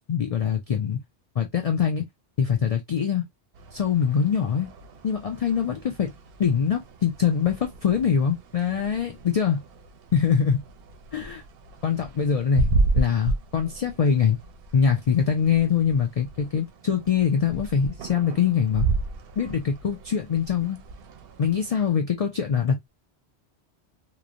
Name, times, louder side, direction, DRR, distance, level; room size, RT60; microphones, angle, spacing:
voice 1, 0.1-1.0 1.4-2.0 2.4-3.2 3.7-4.7 5.0-6.1 6.4-9.6 10.1-10.6 11.1-11.4 11.8-12.7 12.9-14.4 14.7-18.9 19.4-20.8 21.4-22.9, left 7 dB, 55° left, 0.4 m, -23 dB
sound 1, 3.5-21.9, right 3 dB, 65° right, 0.7 m, -33 dB
3.0 x 2.1 x 2.4 m
omnidirectional pair, 1.1 m